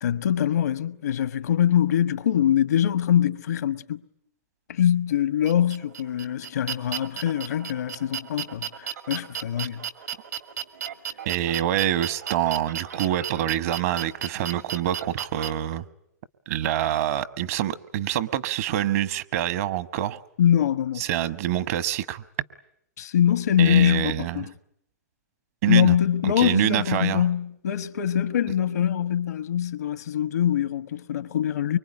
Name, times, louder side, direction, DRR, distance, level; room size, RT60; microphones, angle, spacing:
voice 1, 0.0-4.0 4.7-9.8 20.4-21.0 23.0-24.5 25.7-31.8, left 10 dB, 75° left, 1.3 m, -23 dB
sound 1, 5.4-15.5, right 9 dB, 80° right, 2.3 m, -34 dB
voice 2, 11.2-15.8 16.5-20.2 21.0-22.2 23.6-24.5 25.6-25.9 26.2-27.2, right 12 dB, 55° right, 1.3 m, -26 dB
24.5 x 23.5 x 9.8 m
hypercardioid pair, 120°, 9 cm